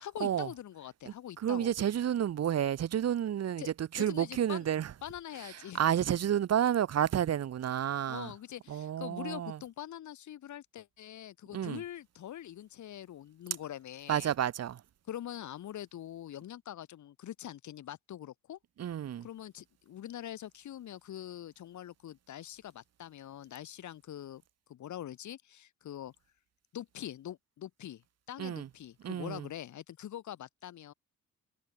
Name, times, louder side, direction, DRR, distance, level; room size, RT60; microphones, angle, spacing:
voice 1, 0.0-1.7 3.6-3.7 4.0-4.7 5.0-5.8 8.1-14.3 15.1-18.6 19.2-24.4 24.7-26.1 26.7-28.0 28.3-30.9, left 11 dB, 70° left, 5.5 m, -44 dB
voice 2, 1.1-4.9 5.4-8.3 8.7-9.6 11.5-11.8 14.1-14.8 18.8-19.3 28.4-28.7 29.0-29.5, right 10 dB, 55° right, 1.5 m, -31 dB
cardioid pair, 90°, 30 cm